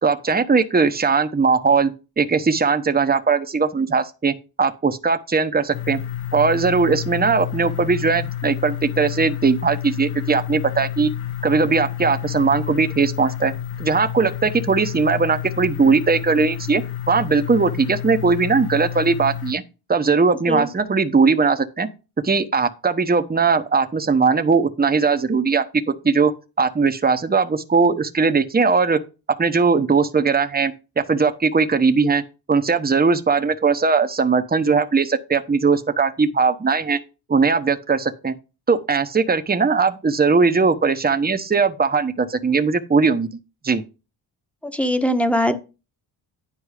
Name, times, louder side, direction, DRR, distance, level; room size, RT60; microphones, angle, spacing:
voice 1, 0.0-6.0 6.3-11.1 11.4-13.5 13.8-19.6 19.9-21.9 22.2-26.3 26.6-29.0 29.4-32.2 32.5-37.0 37.3-38.3 38.7-43.3 43.6-43.8, right 4 dB, 20° right, 1.0 m, -19 dB
sound 1, 5.7-19.5, left 10 dB, 70° left, 1.3 m, -30 dB
voice 2, 44.7-45.6, equal, ahead, 1.2 m, -20 dB
10.0 x 4.5 x 4.9 m
supercardioid pair, 55°, 50 cm